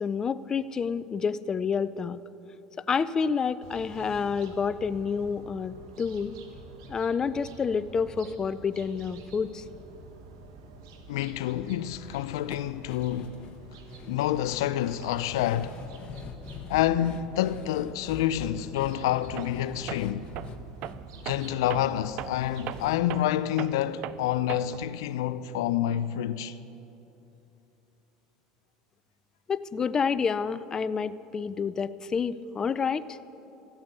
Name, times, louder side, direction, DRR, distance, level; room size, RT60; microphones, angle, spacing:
voice 1, 0.0-2.2 2.9-6.3 6.9-9.6 29.5-33.2, left 6 dB, 30° left, 0.4 m, -29 dB
sound 1, 3.6-22.9, right 4 dB, 85° right, 1.5 m, -48 dB
voice 2, 11.1-13.4 14.1-15.8 16.7-20.3 21.2-26.6, left 12 dB, 85° left, 0.4 m, -28 dB
sound 2, 11.9-24.2 24.5-24.6 24.9-25.0, left 7 dB, 45° left, 0.9 m, -46 dB
Tools, 19.4-19.6 19.9-24.9, right 13 dB, 60° right, 0.4 m, -39 dB
14.0 x 8.8 x 8.2 m
supercardioid pair, 100°, 2 cm